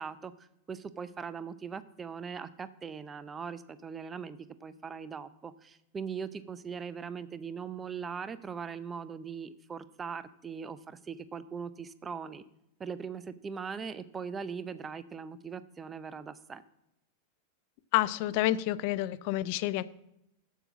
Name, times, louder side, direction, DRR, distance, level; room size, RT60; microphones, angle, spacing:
voice 1, 0.0-12.4 12.8-16.6, right 6 dB, 20° right, 14 dB, 0.6 m, -40 dB
voice 2, 17.9-19.8, left 15 dB, 45° left, 18 dB, 0.4 m, -29 dB
8.0 x 7.4 x 6.0 m, 0.85 s
figure-of-eight pair, 90°, 0 cm